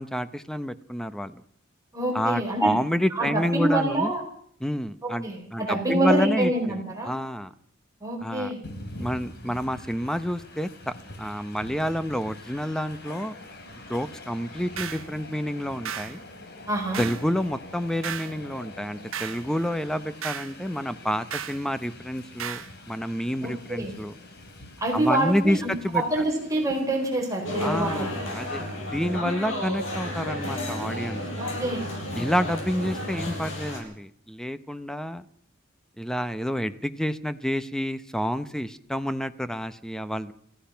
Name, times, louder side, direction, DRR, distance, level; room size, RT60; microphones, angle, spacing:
voice 1, 0.0-1.4 2.1-4.1 4.6-7.5 8.2-8.5 9.0-10.9 11.2-13.4 13.9-16.2 17.0-24.2 24.9-26.0 27.6-31.2 32.1-35.2 36.0-40.3, equal, 5° left, 12 dB, 0.9 m, -29 dB
voice 2, 1.9-2.8 3.1-4.2 5.0-7.1 8.0-8.6 16.6-17.0 23.4-23.9 24.8-28.0 28.6-28.7 31.4-31.9, right 1 dB, 15° right, 1 dB, 4.7 m, -26 dB
Train, 8.6-28.6, left 2 dB, 55° left, 3.4 m, -45 dB
sound 1, 14.8-15.1 15.8-16.2 16.9-17.3 18.0-18.4 19.1-19.4 20.2-20.5 21.3-21.6 22.4-22.7, right 9 dB, 80° right, 1.2 m, -34 dB
sound 2, 27.4-33.8, left 1 dB, 70° left, 7.5 m, -32 dB
28.5 x 16.0 x 5.8 m, 0.65 s
head